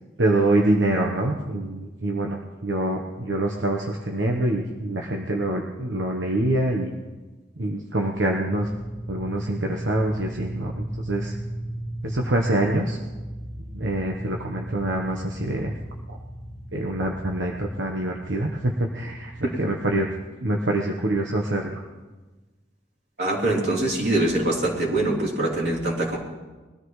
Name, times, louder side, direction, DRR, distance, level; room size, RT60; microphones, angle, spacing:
voice 1, 0.2-6.9 7.6-8.7 9.1-11.3 12.0-13.0 13.7-15.7 16.7-20.1 20.4-21.8, right 1 dB, 85° right, 1 dB, 1.1 m, -25 dB
sound 1, 8.4-20.1, right 1 dB, 5° left, 1.4 m, -36 dB
voice 2, 23.2-26.2, right 1 dB, 60° right, -4 dB, 3.6 m, -23 dB
22.0 x 13.5 x 3.2 m, 1.2 s
head